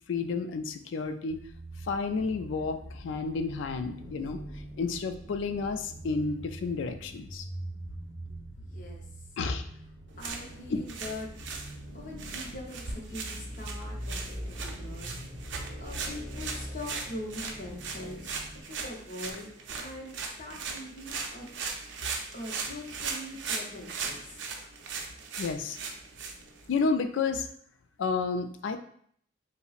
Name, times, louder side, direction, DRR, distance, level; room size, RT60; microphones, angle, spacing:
voice 1, 0.1-1.4 1.8-4.4 4.8-7.5 9.4-9.6 10.7-10.8 25.4-25.8 26.7-27.5 28.0-28.8, left 4 dB, 80° left, 9 dB, 0.3 m, -31 dB
sound 1, 1.3-18.6, equal, 5° right, 1.3 m, -43 dB
voice 2, 8.6-9.1 10.2-11.3 11.9-18.4 18.7-21.5 22.3-24.5, left 1 dB, 45° left, -1 dB, 0.7 m, -42 dB
sound 2, 10.1-26.9, right 5 dB, 75° right, 0.5 m, -39 dB
5.2 x 2.0 x 2.4 m, 0.63 s
head